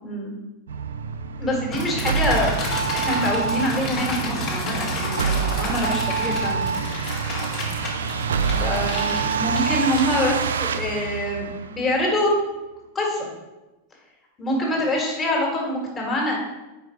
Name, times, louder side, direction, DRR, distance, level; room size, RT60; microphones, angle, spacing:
voice 1, 0.0-0.3 1.4-2.5 2.9-6.6 8.6-12.3 13.0-13.3 14.4-16.4, left 1 dB, 20° left, -1 dB, 1.9 m, -25 dB
sound 1, 0.7-12.1, right 6 dB, 65° right, 0.3 m, -27 dB
sound 2, 1.7-10.4, left 2 dB, 35° left, 1.5 m, -31 dB
sound 3, 3.3-4.9 5.8-7.3 7.7-10.1, left 1 dB, 75° left, 1.4 m, -38 dB
5.2 x 4.6 x 4.3 m, 1.0 s
figure-of-eight pair, 90°, 0 cm